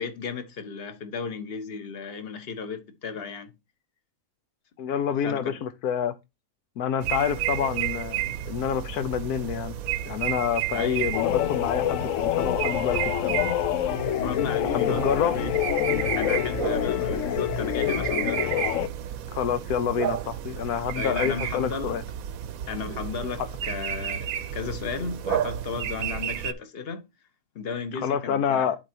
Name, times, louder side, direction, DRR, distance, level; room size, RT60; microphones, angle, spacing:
voice 1, 0.0-3.5 5.2-5.6 10.7-11.1 14.2-15.6 16.0-19.0 21.0-22.0 22.7-27.0 27.5-28.7, left 5 dB, 45° left, 1.3 m, -34 dB
voice 2, 4.8-6.2 6.8-9.7 10.1-13.4 14.7-15.4 19.3-22.0 28.0-28.8, left 8 dB, 85° left, 1.3 m, -28 dB
sound 1, 7.0-26.5, right 11 dB, 75° right, 1.0 m, -32 dB
sound 2, 11.1-18.9, left 13 dB, 70° left, 0.8 m, -26 dB
11.5 x 4.7 x 2.8 m
omnidirectional pair, 1.6 m